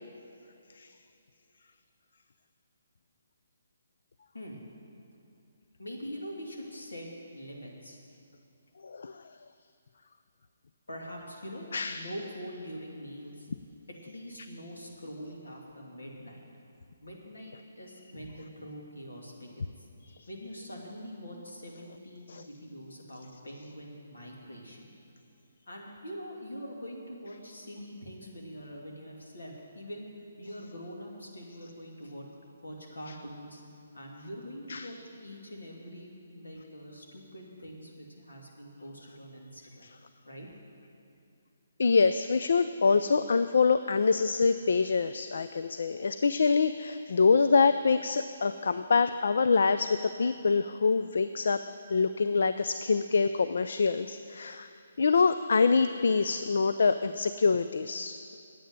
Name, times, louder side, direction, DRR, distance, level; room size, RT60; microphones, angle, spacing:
voice 1, 5.8-8.0 10.9-13.5 14.0-16.4 17.0-19.9 20.3-24.9 25.7-30.1 30.4-32.3 32.6-33.6 33.9-39.9 40.2-40.5, equal, 80° left, -1 dB, 2.7 m, -44 dB
voice 2, 8.8-9.2 11.7-12.0 20.0-20.2 22.3-22.4 34.7-34.9 41.8-51.6 51.9-54.7 55.0-58.3, left 4 dB, 65° left, 11 dB, 0.4 m, -25 dB
9.1 x 9.1 x 9.6 m, 2.7 s
figure-of-eight pair, 145°, 0 cm